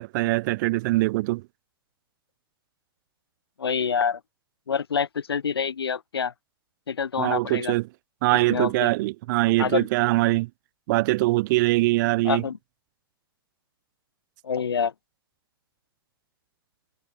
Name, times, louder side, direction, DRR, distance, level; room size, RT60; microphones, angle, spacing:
voice 1, 0.0-1.4 7.2-7.8 8.2-10.5 10.9-12.4, right 20 dB, 50° right, 1.2 m, -22 dB
voice 2, 3.6-4.2 4.7-6.3 6.9-7.7 8.5-8.9 9.6-9.9 12.3-12.6 14.4-14.9, left 6 dB, 80° left, 1.9 m, -26 dB
hypercardioid pair, 105°, 13 cm